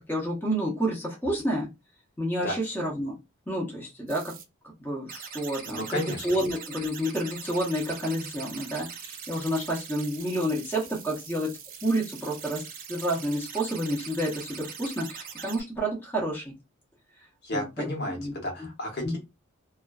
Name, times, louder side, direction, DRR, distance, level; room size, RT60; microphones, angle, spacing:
voice 1, 0.1-1.7 2.2-3.2 3.5-4.3 4.8-11.5 11.8-12.6 12.9-16.5 17.5-18.3 19.0-19.2, right 1 dB, 10° left, -2 dB, 0.7 m, -29 dB
sound 1, 4.1-4.4 5.1-15.6, right 7 dB, 40° right, 0.4 m, -42 dB
voice 2, 5.6-6.3 17.4-19.2, left 1 dB, 50° left, 2 dB, 0.9 m, -32 dB
2.4 x 2.3 x 2.3 m, 0.24 s
head